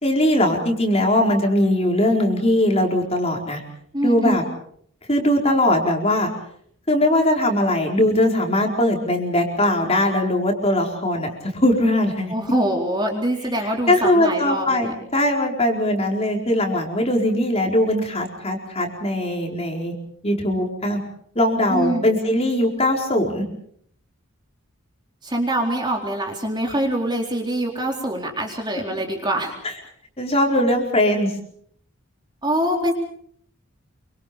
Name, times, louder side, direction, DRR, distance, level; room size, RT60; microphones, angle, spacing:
voice 1, 0.0-3.6 4.0-4.4 5.1-6.3 6.9-12.3 13.6-19.9 20.2-21.0 21.3-23.4 29.6-29.7 30.2-31.3, left 1 dB, 30° left, 1 dB, 4.6 m, -20 dB
voice 2, 3.9-4.4 12.3-14.9 21.7-22.2 25.2-29.6 32.4-32.9, right 1 dB, 20° right, 1 dB, 4.1 m, -24 dB
27.5 x 25.0 x 5.3 m, 0.63 s
head